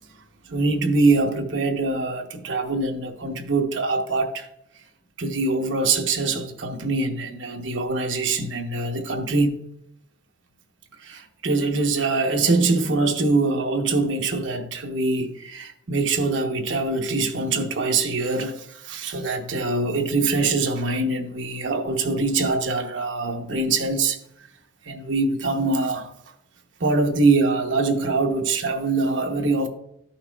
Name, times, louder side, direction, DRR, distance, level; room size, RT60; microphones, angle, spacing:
voice 1, 0.5-4.5 5.2-9.6 11.0-24.2 24.8-26.1 26.8-29.7, right 3 dB, 75° right, 0.9 m, -23 dB
13.5 x 5.7 x 2.3 m
head